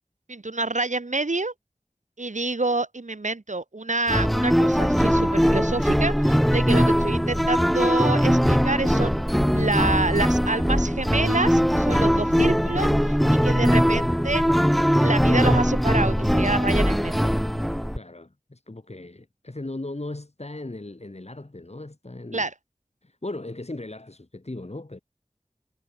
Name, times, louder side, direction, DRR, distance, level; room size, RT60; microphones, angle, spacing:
voice 1, 0.3-1.5 2.2-9.1 9.5-14.4 15.0-17.3 22.3-22.5, right 2 dB, 75° right, 2.4 m, -27 dB
sound 1, 4.1-18.0, equal, ahead, 1.0 m, -21 dB
voice 2, 17.9-22.5 23.0-25.0, left 2 dB, 55° left, 6.5 m, -37 dB
wide cardioid pair, 40°, 13 cm